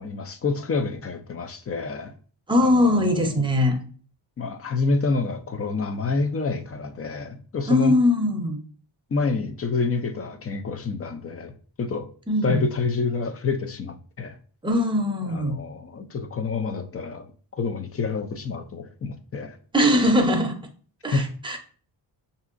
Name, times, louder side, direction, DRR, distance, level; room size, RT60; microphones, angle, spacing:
voice 1, 0.0-2.1 2.6-3.4 4.4-7.9 9.1-12.1 12.4-14.4 15.2-19.6 21.1-21.3, left 4 dB, 30° left, 0.4 m, -28 dB
voice 2, 2.5-3.8 7.7-8.6 12.3-12.7 14.6-15.6 19.7-20.6 21.0-21.6, left 1 dB, 10° right, 0.6 m, -21 dB
5.9 x 2.8 x 2.5 m
wide cardioid pair, 110°, 47 cm